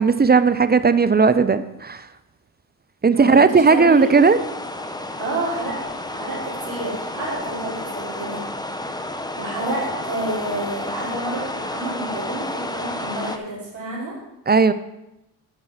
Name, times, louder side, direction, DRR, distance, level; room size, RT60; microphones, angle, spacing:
voice 1, 0.0-2.1 3.0-4.4 14.5-14.7, right 4 dB, 20° right, 12 dB, 0.6 m, -16 dB
voice 2, 3.1-4.1 5.2-8.4 9.4-14.1, right 2 dB, 70° right, -7 dB, 3.9 m, -29 dB
sound 1, 3.8-13.4, left 1 dB, 10° left, 0.9 m, -31 dB
11.5 x 5.5 x 4.9 m, 0.90 s
supercardioid pair, 55°, 47 cm